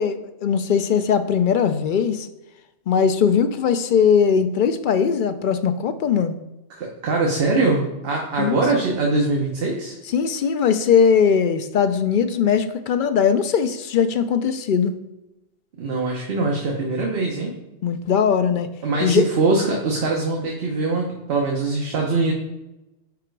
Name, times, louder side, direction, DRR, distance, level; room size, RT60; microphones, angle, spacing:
voice 1, 0.0-2.3 2.9-6.4 8.4-8.6 10.1-15.0 17.8-18.7 19.0-19.2, left 7 dB, 60° left, 9 dB, 0.6 m, -20 dB
voice 2, 6.8-9.9 15.8-17.5 18.8-22.3, right 3 dB, 55° right, -1 dB, 1.1 m, -22 dB
7.2 x 4.9 x 4.6 m, 1.0 s
omnidirectional pair, 1.2 m